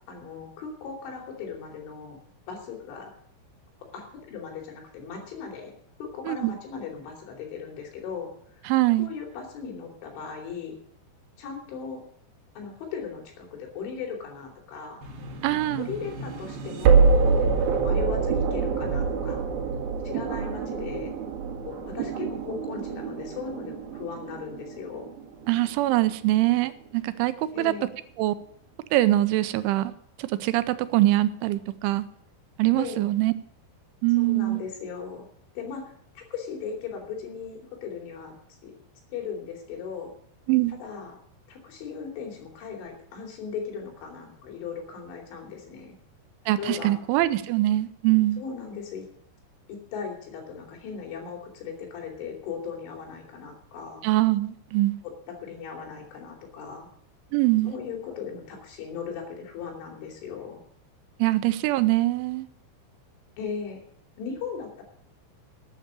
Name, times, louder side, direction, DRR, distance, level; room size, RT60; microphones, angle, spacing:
voice 1, 0.1-2.2 2.5-3.1 3.9-5.7 6.0-8.7 9.0-10.8 11.4-12.0 12.6-15.0 15.5-19.5 20.1-21.1 21.7-25.1 27.5-27.9 32.8-33.0 34.2-35.3 35.6-38.3 38.6-38.7 39.1-40.1 40.7-41.2 41.5-46.0 46.6-47.0 48.4-49.1 49.7-54.0 55.3-56.9 57.6-60.6 63.4-63.8 64.2-64.8, left 6 dB, 80° left, 1 dB, 5.3 m, -38 dB
voice 2, 8.7-9.1 15.4-15.9 25.5-27.7 28.2-28.3 28.9-29.9 30.2-32.1 32.6-33.3 34.0-34.6 40.5-40.7 46.5-48.4 54.0-55.0 57.3-57.7 61.2-62.5, right 17 dB, 90° right, 13 dB, 3.1 m, -23 dB
sound 1, 15.0-26.0, right 5 dB, 60° right, 3.1 m, -26 dB
12.5 x 9.2 x 6.9 m, 0.66 s
omnidirectional pair, 5.4 m